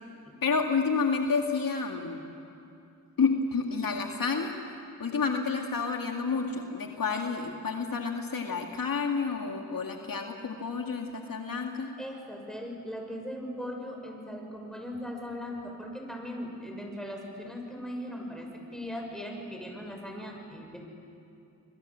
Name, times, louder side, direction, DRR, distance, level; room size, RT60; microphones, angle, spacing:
voice 1, 0.4-2.2 3.2-4.5 5.0-11.9, left 5 dB, 60° left, 2 dB, 2.2 m, -29 dB
voice 2, 12.0-20.9, equal, ahead, 1 dB, 7.0 m, -39 dB
29.5 x 22.5 x 7.6 m, 2.7 s
cardioid pair, 50°, 38 cm